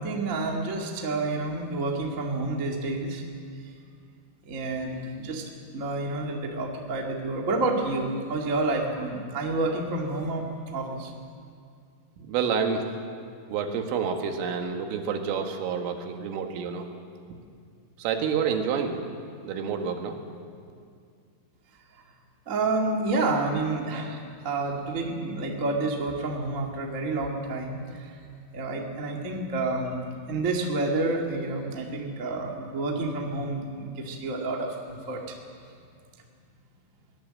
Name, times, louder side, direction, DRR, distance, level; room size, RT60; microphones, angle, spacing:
voice 1, 0.0-3.2 3.6-3.7 4.5-11.1 22.4-28.2 28.5-35.4, right 2 dB, 55° right, 0 dB, 0.8 m, -29 dB
voice 2, 12.3-12.8 13.5-16.9 18.0-19.0 19.4-20.2, right 6 dB, 80° right, 4 dB, 4.1 m, -28 dB
22.5 x 18.0 x 7.7 m, 2.3 s
omnidirectional pair, 5.8 m